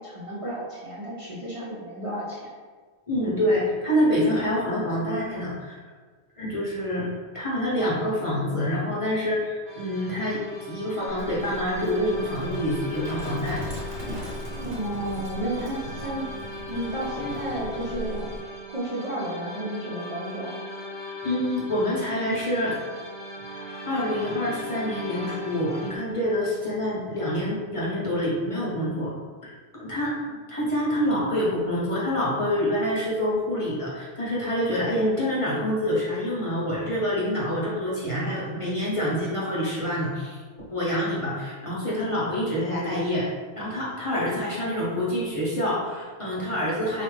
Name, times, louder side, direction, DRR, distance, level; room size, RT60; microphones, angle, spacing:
voice 1, 0.0-2.5 14.5-16.4 16.7-20.6, right 1 dB, 40° right, -8 dB, 0.6 m, -32 dB
voice 2, 3.1-5.8 6.4-7.1 7.3-13.6 21.2-22.8 23.6-29.1 29.4-40.4 40.7-43.3 43.6-47.0, equal, 30° left, -7 dB, 0.8 m, -26 dB
sound 1, 9.6-26.0, left 1 dB, 5° right, 0.9 m, -39 dB
Livestock farm animals working animals, 11.1-18.4, equal, 55° right, 0.9 m, -38 dB
4.1 x 2.5 x 3.2 m, 1.4 s
omnidirectional pair, 1.2 m